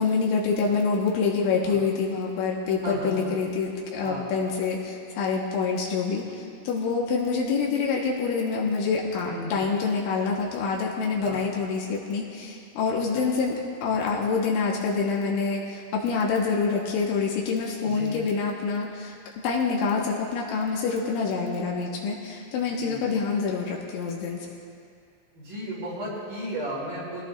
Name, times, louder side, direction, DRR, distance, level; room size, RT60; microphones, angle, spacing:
voice 1, 0.0-19.1 19.4-24.5, left 5 dB, 75° left, -3 dB, 3.6 m, -26 dB
voice 2, 2.8-3.2 4.0-4.4 9.3-9.6 11.2-11.5 13.1-13.3 17.8-18.2 21.3-21.4 22.8-23.1 25.3-27.2, right 1 dB, 45° right, -8 dB, 5.9 m, -35 dB
24.0 x 17.5 x 2.6 m, 2.4 s
omnidirectional pair, 5.7 m